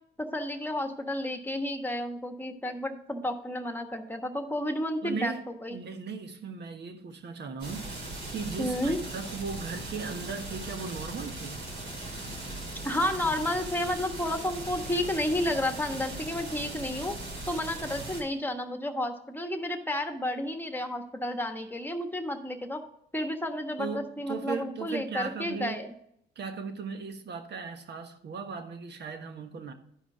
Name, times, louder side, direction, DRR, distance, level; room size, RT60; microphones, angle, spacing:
voice 1, 0.2-5.8 8.6-9.0 12.8-17.1 17.5-22.8 23.1-25.9, left 1 dB, 10° left, 1.3 m, -31 dB
voice 2, 5.0-5.4 5.7-11.6 23.8-25.8 26.3-29.7, right 5 dB, 60° right, 1.4 m, -37 dB
sound 1, 7.6-18.2, right 2 dB, 85° right, 3.9 m, -39 dB
12.0 x 5.0 x 4.9 m
cardioid pair, 90°, 20 cm